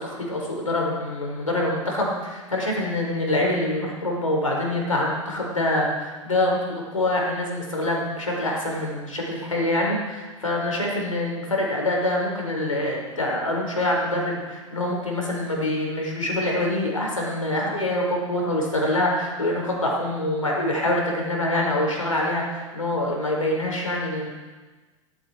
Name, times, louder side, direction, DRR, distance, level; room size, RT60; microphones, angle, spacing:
voice 1, 0.0-24.3, left 1 dB, 85° left, -1 dB, 5.2 m, -25 dB
17.0 x 15.0 x 4.6 m, 1.3 s
figure-of-eight pair, 95°, 17 cm